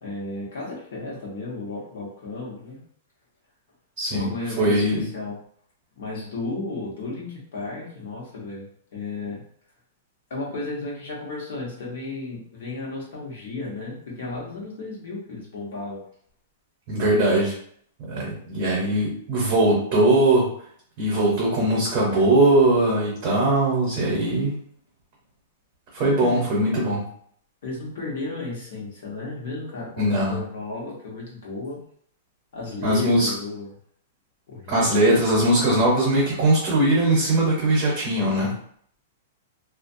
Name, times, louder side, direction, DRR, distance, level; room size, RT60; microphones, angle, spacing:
voice 1, 0.0-2.8 4.1-5.4 5.9-9.4 10.3-16.0 26.0-26.4 27.6-31.8 32.5-33.7 34.5-34.9, left 3 dB, 60° left, -4 dB, 1.0 m, -34 dB
voice 2, 4.6-5.0 16.9-17.5 18.1-20.5 21.0-24.6 25.9-27.0 30.0-30.4 32.8-33.3 34.7-38.5, right 1 dB, 30° right, -5 dB, 0.8 m, -20 dB
2.4 x 2.1 x 2.6 m, 0.63 s
supercardioid pair, 175°, 0 cm